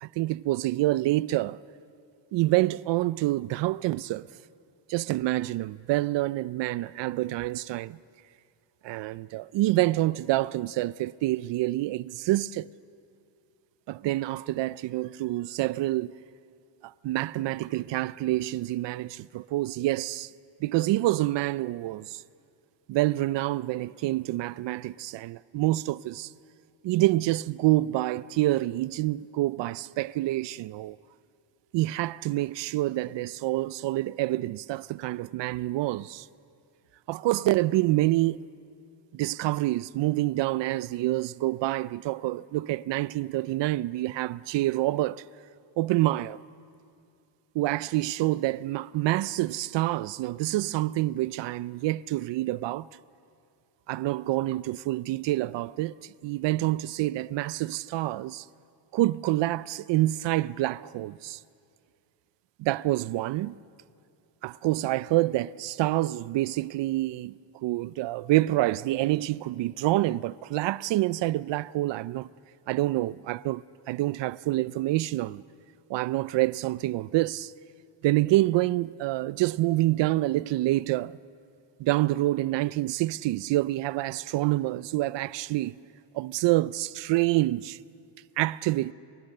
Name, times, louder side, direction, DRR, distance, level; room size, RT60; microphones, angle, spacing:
voice 1, 0.0-1.6 2.3-4.3 4.9-8.0 8.8-12.7 13.9-16.2 16.8-20.3 20.6-22.2 22.9-26.3 26.8-31.0 31.7-36.3 37.1-38.4 39.1-45.2 45.8-46.4 47.5-52.9 53.9-58.5 58.9-61.4 62.6-63.6 64.4-72.3 72.7-75.4 75.9-77.5 78.0-81.2 81.8-85.7 86.1-87.8 88.4-88.9, right 17 dB, 65° right, 0.6 m, -27 dB
29.5 x 28.0 x 6.6 m
cardioid pair, 130°, 47 cm